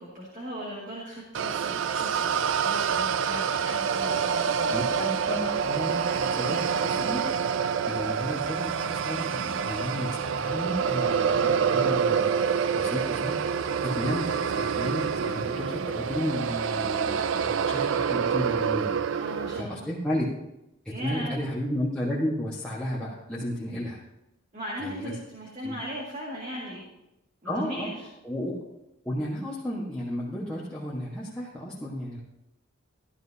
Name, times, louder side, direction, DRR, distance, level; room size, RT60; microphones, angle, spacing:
voice 1, 0.0-4.7 19.2-19.9 20.9-21.4 24.5-26.8 27.4-27.9, equal, 35° right, -4 dB, 2.1 m, -38 dB
sound 1, 1.3-19.6, right 6 dB, 60° right, 0.4 m, -27 dB
voice 2, 4.7-7.3 7.9-13.4 13.8-20.3 20.8-24.0 24.8-25.2 25.6-25.8 27.4-27.9 28.2-28.6 29.0-32.2, equal, 5° left, -7 dB, 1.4 m, -33 dB
13.5 x 11.5 x 2.8 m, 0.88 s
head